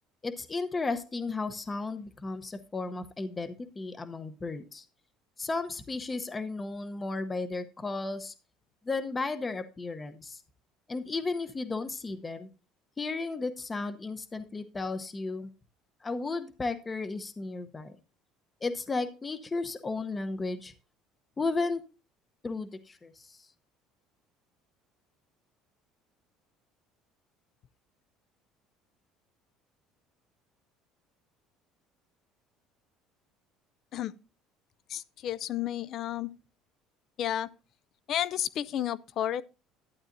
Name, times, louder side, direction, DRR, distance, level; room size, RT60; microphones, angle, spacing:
voice 1, 0.2-4.8 5.4-8.3 8.8-10.4 10.9-12.5 13.0-15.5 16.0-18.0 18.6-20.7 21.4-21.8 22.4-23.4, left 3 dB, 20° left, 0.8 m, -34 dB
voice 2, 34.9-36.3 37.2-37.5 38.1-39.4, left 11 dB, 50° left, 0.4 m, -31 dB
12.0 x 8.7 x 2.6 m
cardioid pair, 125°, 0 cm